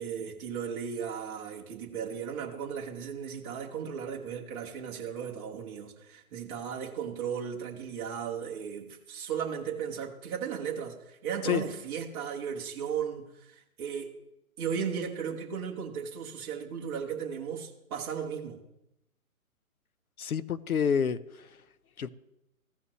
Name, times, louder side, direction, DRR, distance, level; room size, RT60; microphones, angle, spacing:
voice 1, 0.0-14.1 14.6-18.6, right 7 dB, 15° right, 1.0 m, -36 dB
voice 2, 20.2-21.5 22.0-22.1, left 7 dB, 80° left, 0.7 m, -28 dB
15.5 x 5.6 x 3.1 m
figure-of-eight pair, 145°, 43 cm